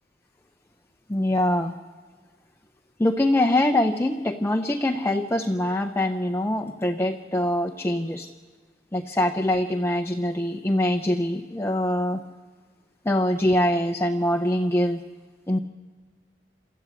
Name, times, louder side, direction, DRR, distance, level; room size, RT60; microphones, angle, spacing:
voice 1, 1.1-1.7 3.0-8.3 8.9-12.2 13.0-15.0 15.5-15.6, left 1 dB, 15° left, 5 dB, 0.6 m, -23 dB
28.0 x 13.0 x 8.3 m, 1.5 s
head